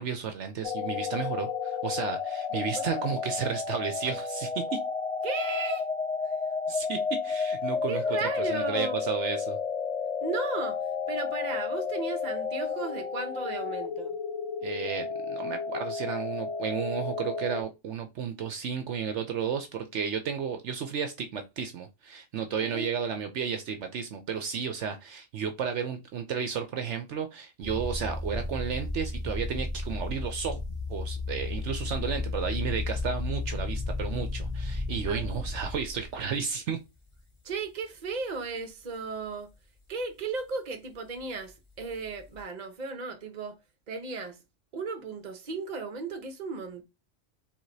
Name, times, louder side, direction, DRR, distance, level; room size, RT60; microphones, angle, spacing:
voice 1, 0.0-4.8 6.7-8.0 8.4-9.6 14.6-30.6 30.9-36.8, right 7 dB, 70° right, 0.9 m, -33 dB
sound 1, 0.6-17.6, left 5 dB, 55° left, 0.4 m, -32 dB
voice 2, 2.5-3.2 5.2-5.9 6.2-6.3 7.9-9.0 10.2-14.2 22.6-22.9 35.1-35.4 37.4-39.5 39.9-43.6 43.9-44.4 44.7-46.8, right 4 dB, 40° right, 0.9 m, -35 dB
sound 2, 27.6-36.4 37.1-37.5 38.1-38.2 41.8-42.4, left 2 dB, 25° left, 1.4 m, -34 dB
4.8 x 3.6 x 2.7 m
omnidirectional pair, 1.3 m